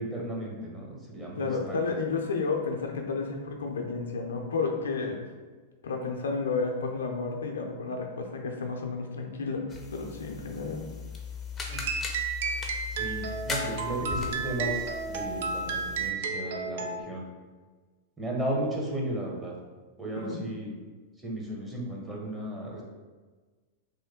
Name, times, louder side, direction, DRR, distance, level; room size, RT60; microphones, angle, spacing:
voice 1, 0.0-1.8 11.7-11.8 13.0-17.2 18.2-19.5 20.0-20.7 21.2-22.8, right 1 dB, 15° right, -3 dB, 0.9 m, -34 dB
voice 2, 1.4-5.2 5.8-10.9 20.2-20.4, left 4 dB, 80° left, 2 dB, 0.4 m, -31 dB
sound 1, 9.7-16.1, left 5 dB, 20° left, 0.5 m, -39 dB
sound 2, 11.7-17.0, right 4 dB, 65° right, 0.3 m, -32 dB
3.0 x 2.1 x 3.5 m, 1.3 s
hypercardioid pair, 105°, 0 cm